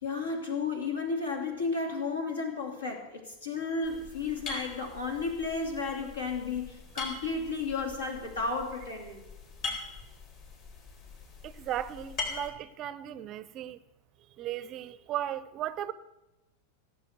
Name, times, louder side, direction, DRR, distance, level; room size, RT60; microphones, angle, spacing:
voice 1, 0.0-9.2, left 4 dB, 70° left, 2.8 m, -33 dB
sound 1, 3.8-12.5, left 4 dB, 45° left, 3.9 m, -42 dB
voice 2, 11.4-13.8 14.4-15.9, right 11 dB, 35° right, 0.6 m, -36 dB
16.0 x 7.5 x 7.9 m
figure-of-eight pair, 90°, 0 cm